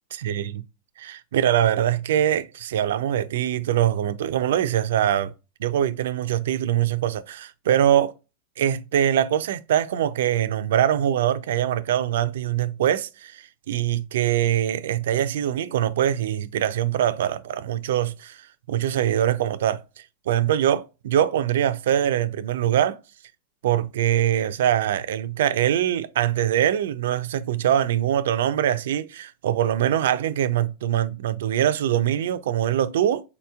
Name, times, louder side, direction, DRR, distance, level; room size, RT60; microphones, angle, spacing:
voice 1, 0.2-0.6 1.0-5.3 5.6-8.1 8.6-18.4 18.7-19.8 20.3-23.0 23.6-33.2, right 11 dB, 80° right, 0.3 m, -23 dB
4.1 x 2.8 x 2.2 m
supercardioid pair, 130°, 0 cm